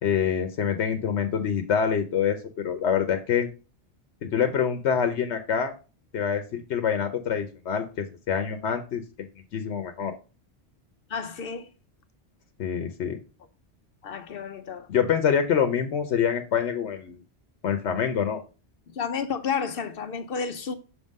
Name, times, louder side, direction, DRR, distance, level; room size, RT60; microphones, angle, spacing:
voice 1, 0.0-3.5 4.2-5.7 6.1-9.0 9.5-10.1 12.6-13.2 14.9-17.2 17.6-18.4, left 7 dB, 85° left, 1.1 m, -26 dB
voice 2, 11.1-11.7 14.0-14.9 18.9-20.7, left 6 dB, 60° left, 0.8 m, -31 dB
6.5 x 3.7 x 5.2 m
omnidirectional pair, 1.1 m